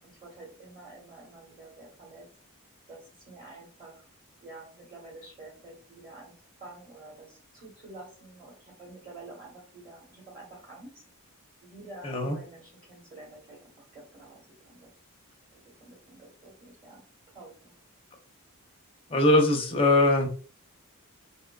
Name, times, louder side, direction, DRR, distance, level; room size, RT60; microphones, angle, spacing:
voice 1, 0.0-2.3 2.9-4.0 4.4-11.0 11.6-14.9 15.8-17.0 17.3-17.7, right 2 dB, 35° right, -7 dB, 1.2 m, -49 dB
voice 2, 12.0-12.4 19.1-20.3, left 2 dB, 25° left, 2 dB, 0.5 m, -21 dB
2.6 x 2.4 x 2.2 m, 0.40 s
head